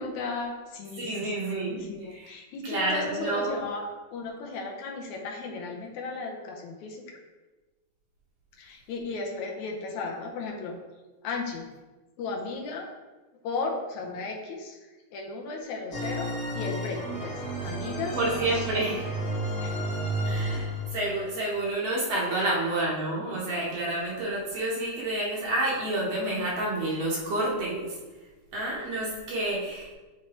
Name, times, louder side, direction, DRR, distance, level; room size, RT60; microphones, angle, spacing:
voice 1, 0.0-7.2 8.6-10.8 11.2-11.7 12.2-12.9 13.4-16.3 16.5-18.9 19.6-19.8 22.3-22.6, left 3 dB, 75° left, 0 dB, 2.1 m, -35 dB
voice 2, 1.0-1.8 2.1-2.3 2.6-3.6 18.1-19.0 20.2-28.0 28.5-29.9, right 2 dB, 60° right, -4 dB, 2.0 m, -29 dB
sound 1, 15.9-21.1, right 1 dB, 5° left, 0.5 m, -32 dB
9.6 x 4.4 x 3.0 m, 1.2 s
omnidirectional pair, 3.6 m